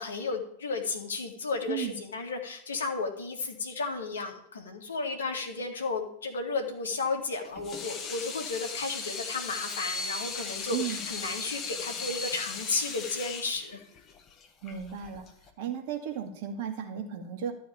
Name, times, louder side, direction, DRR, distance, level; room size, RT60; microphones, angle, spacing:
voice 1, 0.0-13.8, left 3 dB, 70° left, 4 dB, 2.0 m, -33 dB
Water tap faucet / Sink (filling or washing), 7.4-15.5, left 4 dB, 30° left, 1.6 m, -37 dB
voice 2, 10.7-11.0 14.6-15.3 15.6-17.5, right 8 dB, 50° right, 4 dB, 2.1 m, -34 dB
12.5 x 4.7 x 8.6 m, 0.67 s
figure-of-eight pair, 90°, 0 cm